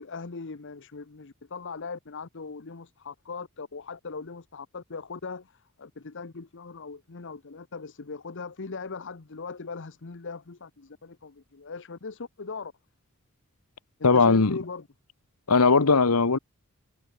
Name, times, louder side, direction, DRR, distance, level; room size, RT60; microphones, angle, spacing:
voice 1, 0.0-5.5 5.8-12.7 14.0-14.8, left 4 dB, 55° left, 0.9 m, -39 dB
voice 2, 14.0-14.6 15.5-16.4, left 4 dB, 90° left, 1.2 m, -19 dB
head